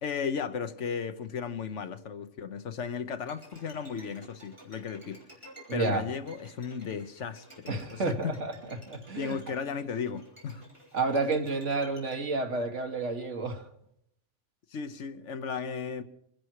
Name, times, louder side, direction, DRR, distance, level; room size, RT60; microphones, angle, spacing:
voice 1, 0.0-5.2 5.7-8.3 9.2-10.6 14.7-16.0, left 6 dB, 80° left, 1.3 m, -35 dB
Bowed string instrument, 3.2-12.2, right 1 dB, 25° right, 4.6 m, -53 dB
voice 2, 5.7-6.0 7.7-8.5 8.9-9.4 10.9-13.7, right 3 dB, 80° right, 2.0 m, -30 dB
25.5 x 11.0 x 4.8 m
omnidirectional pair, 1.2 m